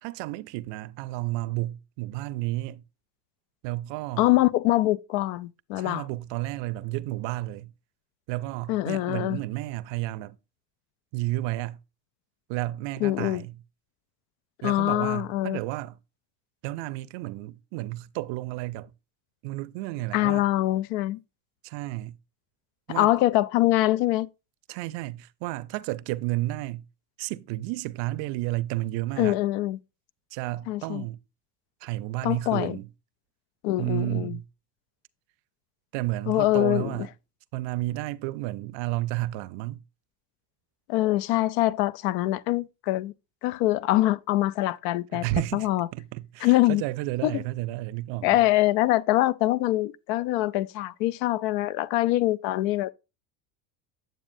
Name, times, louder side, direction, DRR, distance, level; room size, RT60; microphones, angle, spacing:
voice 1, 0.0-2.8 3.6-4.3 5.8-7.7 8.3-10.4 11.1-11.8 12.5-13.5 14.6-16.0 16.6-18.9 19.4-20.4 21.6-22.2 22.9-23.1 24.7-26.9 27.2-29.4 30.3-31.2 31.8-32.9 33.8-34.4 35.9-37.1 37.5-39.8 45.1-45.7 45.9-48.4, right 17 dB, 60° right, 0.6 m, -32 dB
voice 2, 4.2-6.0 8.7-9.4 13.0-13.4 14.6-15.6 20.1-21.2 22.9-24.3 29.2-29.8 30.7-31.0 32.2-32.8 33.6-34.4 36.3-37.0 40.9-43.1 43.4-45.2 45.5-45.9 46.4-46.8 47.2-47.4 48.2-52.9, left 16 dB, 75° left, 0.6 m, -24 dB
9.1 x 7.1 x 2.6 m
supercardioid pair, 95°, 50 cm